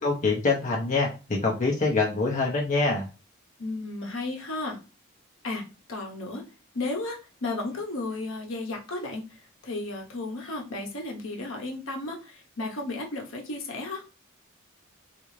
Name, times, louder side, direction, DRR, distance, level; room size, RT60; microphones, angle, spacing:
voice 1, 0.0-3.1, left 3 dB, 35° left, 0.6 m, -25 dB
voice 2, 3.6-4.8 5.4-6.4 6.7-9.4 9.6-14.0, left 2 dB, 65° left, 0.8 m, -34 dB
3.7 x 2.5 x 3.1 m
head